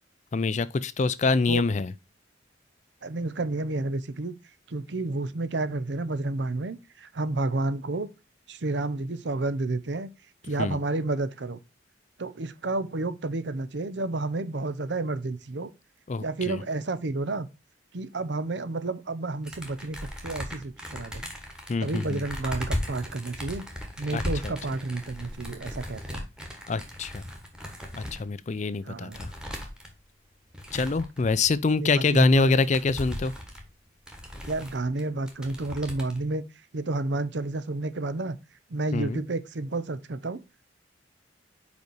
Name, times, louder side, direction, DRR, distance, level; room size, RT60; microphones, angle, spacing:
voice 1, 0.3-1.9 10.6-10.8 16.1-16.6 21.7-22.2 24.1-24.5 26.7-27.2 27.9-29.3 30.7-33.3 38.9-39.2, left 4 dB, 35° left, 0.4 m, -25 dB
voice 2, 3.0-4.4 4.7-8.1 8.5-10.1 10.4-11.6 12.2-15.7 16.2-17.5 17.9-21.2 21.8-23.6 24.0-26.2 28.5-29.2 31.8-32.6 34.5-36.4 36.7-38.4 38.7-40.4, right 2 dB, 65° right, 0.7 m, -30 dB
sound 1, 19.4-28.2 28.7-28.8 29.1-29.9 30.5-31.5 32.0-32.1 32.3-35.0 35.3-36.2, equal, 5° right, 1.5 m, -37 dB
5.2 x 5.2 x 4.6 m
head